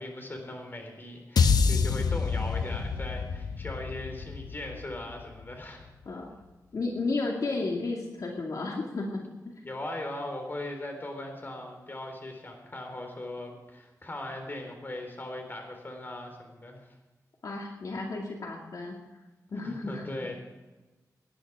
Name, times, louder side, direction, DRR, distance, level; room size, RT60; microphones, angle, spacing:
voice 1, 0.0-5.9 9.6-17.0 19.6-20.4, left 1 dB, 30° left, 3 dB, 3.9 m, -39 dB
sound 1, 1.4-5.7, left 5 dB, 90° left, 0.8 m, -27 dB
voice 2, 6.7-9.6 17.4-19.0 19.5-20.0, left 3 dB, 65° left, 0 dB, 2.3 m, -33 dB
19.0 x 10.5 x 4.9 m, 1.2 s
wide cardioid pair, 90°, 7 cm